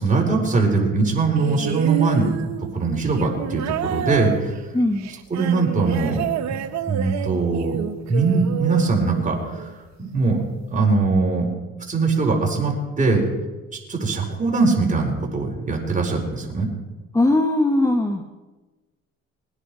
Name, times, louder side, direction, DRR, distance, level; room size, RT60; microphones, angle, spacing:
voice 1, 0.0-2.3 2.7-4.6 5.3-6.6 6.8-7.8 8.1-9.7 10.0-10.4 10.7-11.5 11.9-13.3 13.7-16.7, right 3 dB, 25° right, -1 dB, 4.6 m, -21 dB
sound 1, 1.4-9.8 10.8-10.9, right 10 dB, 65° right, 1.1 m, -29 dB
voice 2, 4.7-5.1 17.1-18.2, left 2 dB, 10° left, 6 dB, 1.1 m, -19 dB
21.0 x 10.0 x 5.0 m, 1.2 s
cardioid pair, 95°, 30 cm